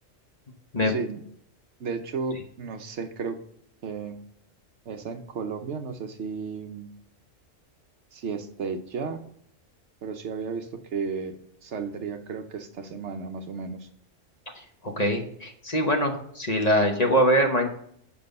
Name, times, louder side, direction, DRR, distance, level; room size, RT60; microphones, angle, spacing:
voice 1, 0.8-1.2 1.8-3.4 3.8-4.2 4.9-6.9 8.1-9.2 10.0-11.4 11.6-13.9, right 5 dB, 65° right, 7 dB, 1.0 m, -33 dB
voice 2, 14.5-17.7, equal, 35° left, 2 dB, 1.0 m, -23 dB
8.4 x 5.4 x 5.3 m, 0.67 s
omnidirectional pair, 1.3 m